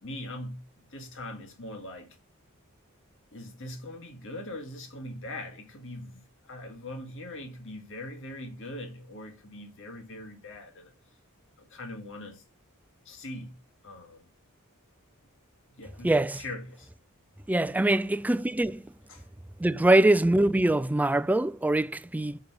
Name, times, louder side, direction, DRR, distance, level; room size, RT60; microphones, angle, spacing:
voice 1, 0.0-2.2 3.3-10.9 11.6-12.4 13.1-13.6 13.8-14.2 15.7-16.9 17.8-17.9 19.1-19.2, left 1 dB, 60° left, 1.9 m, -41 dB
voice 2, 16.0-16.4 17.5-18.8 19.6-22.4, right 1 dB, 5° right, 0.3 m, -23 dB
6.7 x 4.9 x 4.8 m
head